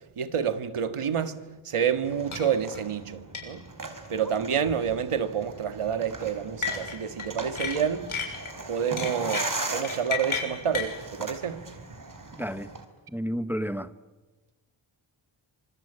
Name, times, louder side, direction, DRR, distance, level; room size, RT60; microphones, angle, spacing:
voice 1, 0.2-1.4 1.7-3.6 4.1-8.1 8.7-11.6, right 7 dB, 85° right, 1.9 m, -28 dB
sound 1, 2.0-12.9, right 3 dB, 40° right, 4.8 m, -38 dB
sound 2, 2.3-2.5 2.7-2.8 3.3-3.5 4.7-4.9 6.6-7.3 7.6-8.5 9.0-10.9, left 6 dB, 75° left, 6.9 m, -32 dB
voice 2, 12.4-12.7 13.1-13.9, equal, 5° right, 1.1 m, -30 dB
26.5 x 25.5 x 8.8 m
wide cardioid pair, 70°, 50 cm